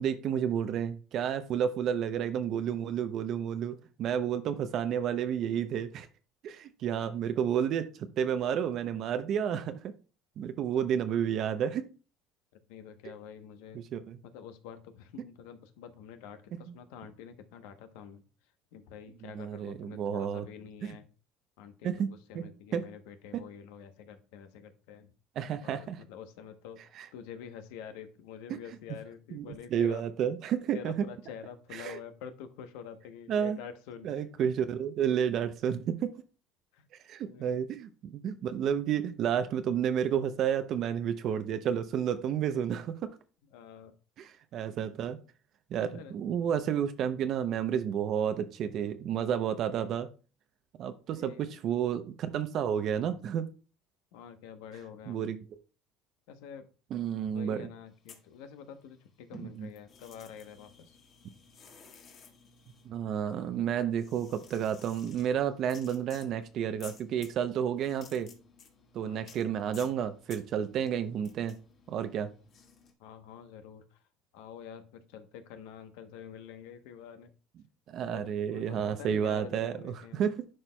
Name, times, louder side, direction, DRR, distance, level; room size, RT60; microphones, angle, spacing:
voice 1, 0.0-6.1 6.4-7.9 8.2-9.9 10.4-11.8 13.7-14.2 19.2-20.5 20.8-21.0 21.8-22.1 22.3-22.4 22.7-22.8 23.3-23.4 25.4-26.0 26.9-27.1 28.5-28.6 29.3-30.9 31.7-32.0 33.3-33.6 34.0-36.1 37.1-42.9 44.2-45.2 45.7-50.1 50.8-53.4 55.1-55.4 56.9-57.7 59.3-59.7 62.9-68.3 68.9-71.6 71.9-72.3 77.9-80.5, right 8 dB, 55° right, 10 dB, 0.6 m, -31 dB
voice 2, 12.7-13.8 14.2-18.2 18.7-21.1 21.6-25.1 25.6-26.8 27.1-30.0 30.7-34.1 36.7-36.8 37.3-37.7 43.5-43.9 45.9-46.1 51.1-51.6 54.1-55.3 56.3-56.7 57.3-61.0 69.0-69.3 73.0-74.0 74.3-77.3 78.0-80.2, left 8 dB, 80° left, 9 dB, 0.8 m, -47 dB
sound 1, 57.9-59.0 59.3-72.9, left 5 dB, 45° left, 1.5 m, -56 dB
11.0 x 4.4 x 2.2 m, 0.36 s
supercardioid pair, 105°, 0 cm